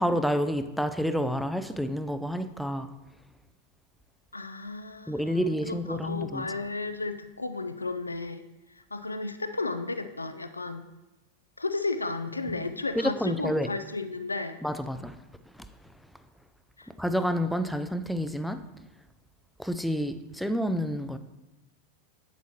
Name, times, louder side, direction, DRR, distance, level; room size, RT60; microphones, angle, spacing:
voice 1, 0.0-2.9 5.1-6.5 12.5-12.6 13.0-13.7 14.6-15.1 17.0-18.6 19.6-21.2, equal, ahead, 0.4 m, -29 dB
voice 2, 4.3-8.4 8.9-10.8 11.6-14.6 16.8-16.9, left 3 dB, 80° left, 0.4 m, -33 dB
8.1 x 8.0 x 2.9 m
figure-of-eight pair, 90°, 0 cm